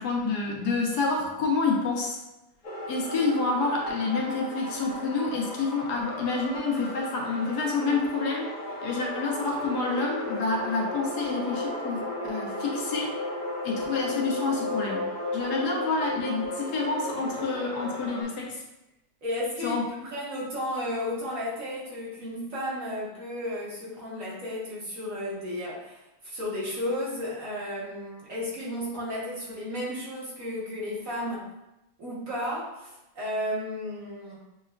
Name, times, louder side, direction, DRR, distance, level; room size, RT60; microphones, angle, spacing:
voice 1, 0.0-2.2 2.9-8.5 8.8-13.1 13.6-18.6 19.6-19.8, left 3 dB, 85° left, -1 dB, 1.4 m, -28 dB
sound 1, 2.6-18.2, left 1 dB, 50° left, 0.6 m, -35 dB
voice 2, 19.2-19.8 20.0-31.5 32.0-34.4, left 1 dB, 60° right, -6 dB, 1.5 m, -33 dB
6.6 x 2.3 x 2.3 m, 0.95 s
omnidirectional pair, 1.7 m